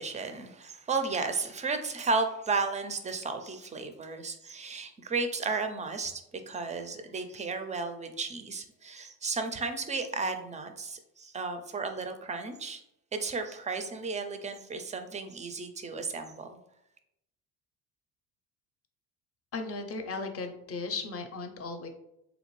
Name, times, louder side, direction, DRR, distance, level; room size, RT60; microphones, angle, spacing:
voice 1, 0.0-6.2 6.5-12.8 13.1-16.6, right 4 dB, 20° right, 0.4 m, -33 dB
voice 2, 19.5-21.9, left 3 dB, 35° left, 0.6 m, -36 dB
3.5 x 2.5 x 3.1 m
supercardioid pair, 80°, 41 cm